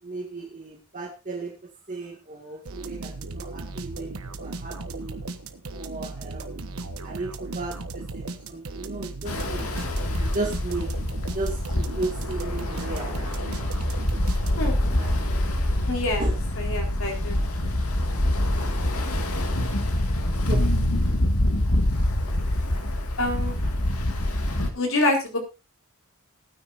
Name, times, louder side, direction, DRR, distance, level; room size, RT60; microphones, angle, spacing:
voice 1, 0.0-1.5 1.9-5.2 5.7-6.6 7.0-9.7 10.2-10.9 11.3-11.6 11.9-13.3 14.5-15.2 16.2-16.4 20.5-20.6, right 2 dB, 35° right, 0 dB, 2.1 m, -34 dB
sound 1, 2.7-14.9, right 3 dB, 75° right, 1.4 m, -36 dB
Ocean, 9.2-24.7, left 1 dB, 85° left, 2.2 m, -25 dB
voice 2, 15.9-16.2 16.6-17.4 23.2-23.6 24.7-25.4, left 2 dB, 65° left, 1 dB, 4.2 m, -26 dB
19.0 x 9.6 x 2.7 m, 0.27 s
head